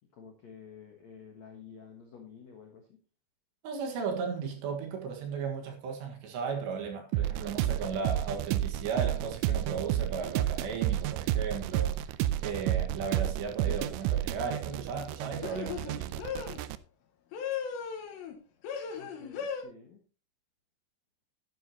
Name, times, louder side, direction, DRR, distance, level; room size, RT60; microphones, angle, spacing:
voice 1, 0.1-3.0 18.9-20.0, left 6 dB, 85° left, 1.5 m, -51 dB
voice 2, 3.6-16.2, right 5 dB, 65° right, 3.6 m, -36 dB
sound 1, 7.1-16.8, right 12 dB, 85° right, 2.6 m, -31 dB
sound 2, 13.7-14.0 15.4-16.6 17.3-18.4 18.6-19.6, left 7 dB, 70° left, 3.3 m, -37 dB
12.0 x 9.7 x 2.9 m
omnidirectional pair, 5.7 m